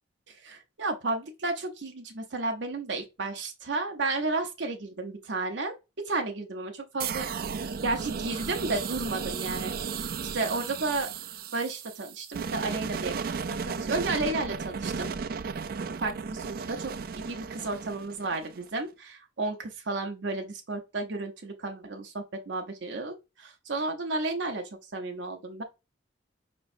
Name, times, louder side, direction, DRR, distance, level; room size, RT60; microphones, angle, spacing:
voice 1, 0.3-5.7 6.0-7.3 7.8-9.7 10.3-11.1 11.5-13.1 13.5-15.1 16.0-24.6 24.9-25.6, right 3 dB, 75° right, 0.8 m, -32 dB
sound 1, 7.0-18.8, right 5 dB, 50° right, 0.4 m, -35 dB
5.2 x 3.1 x 2.5 m
head